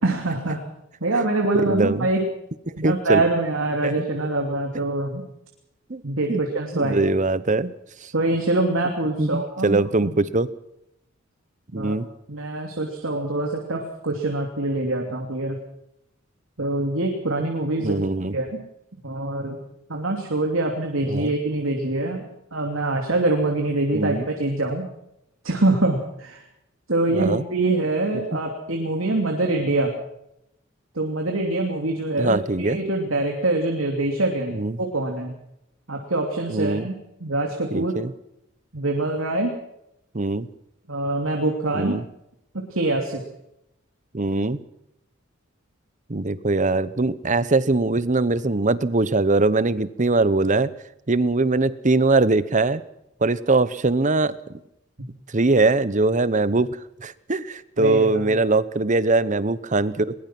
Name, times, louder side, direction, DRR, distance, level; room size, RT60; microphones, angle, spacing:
voice 1, 0.0-0.6 1.0-2.2 2.8-5.2 6.0-7.0 8.1-10.1 11.7-11.9 12.3-15.6 16.6-18.0 18.3-18.5 19.0-19.6 19.9-22.2 22.5-24.9 25.4-26.4 26.9-29.9 30.9-35.3 35.9-36.9 37.2-37.9 38.7-39.5 40.9-42.0 42.7-43.2 57.8-58.4, right 2 dB, 80° right, 2 dB, 3.0 m, -24 dB
voice 2, 1.7-2.1 2.7-3.2 3.8-4.0 5.9-6.0 6.3-6.4 6.7-7.7 8.0-8.1 9.2-10.5 11.7-12.1 17.8-18.4 21.1-21.3 23.9-24.2 27.1-27.4 32.2-32.8 34.5-34.8 36.5-36.9 37.7-38.1 40.1-40.5 41.7-42.0 44.1-44.6 46.1-50.7 51.1-52.8 53.2-54.3 55.3-56.7 57.0-60.1, right 3 dB, 40° right, 16 dB, 0.9 m, -22 dB
22.0 x 21.0 x 6.0 m, 0.81 s
head